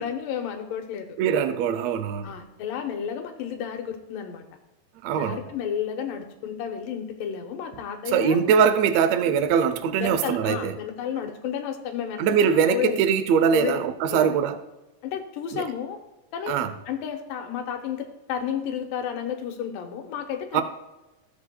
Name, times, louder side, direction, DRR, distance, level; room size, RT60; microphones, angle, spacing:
voice 1, 0.0-1.1 2.2-4.4 5.1-8.4 10.0-13.0 13.5-14.4 15.0-16.0 16.3-20.6, left 8 dB, 90° left, 2.7 m, -32 dB
voice 2, 1.2-2.4 5.0-5.4 8.1-10.7 12.2-14.6 15.5-15.6 16.5-16.7 20.5-20.6, right 7 dB, 80° right, 1.5 m, -22 dB
16.0 x 7.2 x 2.3 m
omnidirectional pair, 3.8 m